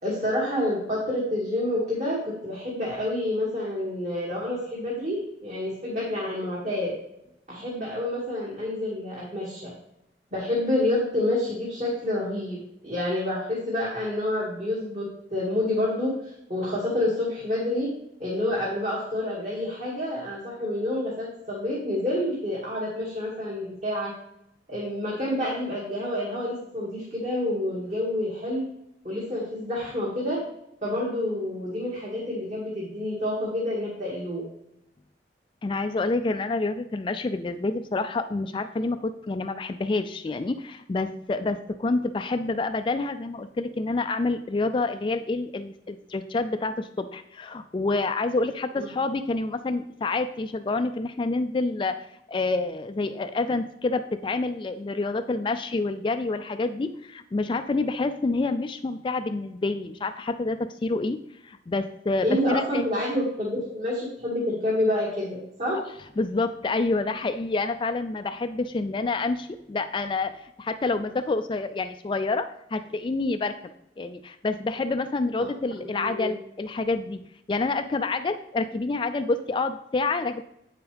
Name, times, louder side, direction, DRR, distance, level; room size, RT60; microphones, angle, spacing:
voice 1, 0.0-6.9 7.5-9.7 10.3-12.6 12.8-16.1 16.5-17.9 18.2-24.1 24.7-28.6 29.0-30.4 30.8-34.4 48.8-49.0 62.2-65.8 75.4-75.5 75.9-76.3, left 1 dB, 40° right, -5 dB, 2.1 m, -28 dB
voice 2, 35.6-52.0 52.3-61.2 61.4-62.9 66.2-73.5 74.0-77.2 77.5-80.4, left 3 dB, 30° left, 9 dB, 0.3 m, -28 dB
8.9 x 7.0 x 3.4 m, 0.81 s
head